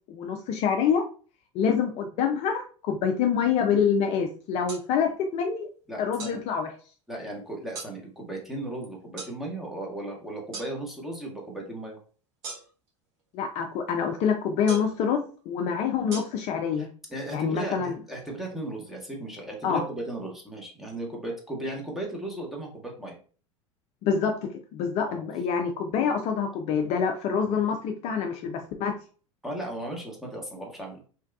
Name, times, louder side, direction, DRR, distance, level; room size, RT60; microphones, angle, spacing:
voice 1, 0.1-1.0 1.5-5.7 6.0-6.7 13.3-16.9 17.3-17.9 19.6-19.8 24.0-24.3 24.7-28.9, left 7 dB, 45° left, 4 dB, 0.4 m, -26 dB
sound 1, 4.7-4.8 6.2-6.4 7.7-7.9 9.2-9.3 10.5-10.7 12.4-12.9 14.7-15.0 16.1-16.2, right 4 dB, 60° right, 1.1 m, -37 dB
voice 2, 5.9-6.4 7.1-12.0 16.8-23.2 25.1-25.2 27.4-27.6 29.4-31.1, right 1 dB, ahead, -1 dB, 1.0 m, -36 dB
3.0 x 2.2 x 2.4 m, 0.40 s
figure-of-eight pair, 80°, 16 cm